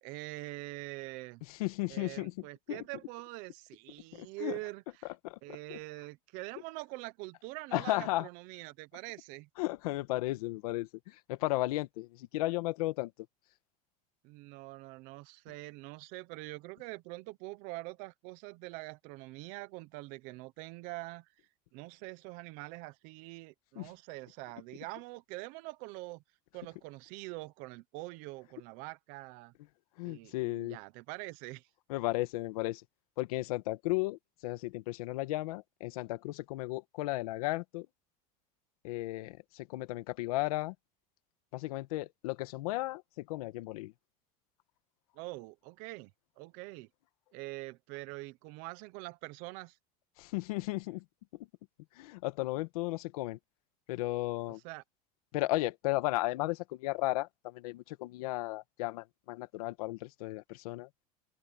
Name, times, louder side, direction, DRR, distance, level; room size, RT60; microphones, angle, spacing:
voice 1, 0.0-1.4 1.9-5.1 5.4-9.5 14.2-21.3 21.7-26.2 26.5-29.5 30.0-31.7 45.1-46.1 46.4-46.9 47.3-49.8 54.6-54.8, right 21 dB, 45° right, 0.9 m, -44 dB
voice 2, 1.5-2.8 4.1-4.6 5.2-5.8 7.7-8.3 9.6-13.1 23.7-23.9 30.0-30.8 31.9-32.8 33.2-37.9 38.8-40.7 41.5-43.9 50.2-51.0 51.3-51.5 51.9-53.4 53.9-54.6 55.3-60.9, left 19 dB, 80° left, 1.5 m, -35 dB
open air
cardioid pair, 180°, 19 cm